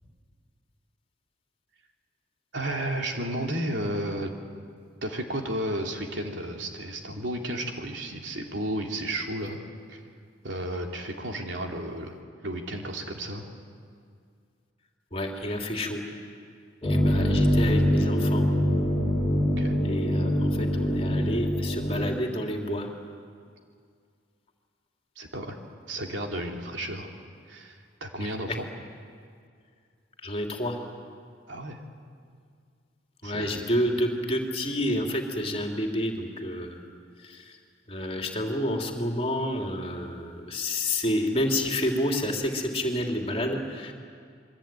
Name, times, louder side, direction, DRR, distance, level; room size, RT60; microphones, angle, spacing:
voice 1, 2.5-4.3 5.0-9.6 9.9-10.0 10.4-12.2 12.4-13.4 19.6-19.7 25.2-25.6 25.9-27.1 27.5-28.6 31.5-31.8 33.2-33.6, right 1 dB, 70° right, 1 dB, 3.1 m, -33 dB
voice 2, 15.1-16.0 16.9-18.5 19.8-22.9 30.2-30.8 33.2-36.7 37.9-43.9, left 1 dB, 30° left, 1 dB, 3.1 m, -29 dB
sound 1, 16.8-22.1, equal, 15° left, 4.1 m, -24 dB
27.5 x 23.0 x 9.1 m, 2.2 s
head